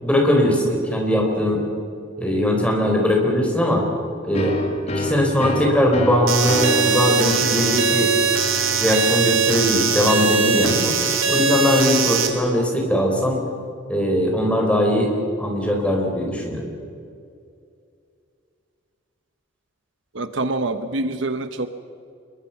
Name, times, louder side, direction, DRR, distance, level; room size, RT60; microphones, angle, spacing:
voice 1, 0.0-1.6 2.2-3.9 4.2-4.5 4.8-8.1 8.8-10.9 11.3-13.4 13.9-15.1 15.4-16.7, left 1 dB, 5° left, 0 dB, 4.5 m, -20 dB
sound 1, 4.3-11.8, left 2 dB, 35° left, 2.0 m, -30 dB
sound 2, 6.3-12.3, right 5 dB, 85° right, 3.0 m, -21 dB
voice 2, 20.1-21.7, right 2 dB, 65° right, 10 dB, 1.1 m, -25 dB
27.0 x 22.5 x 5.9 m, 2.4 s
head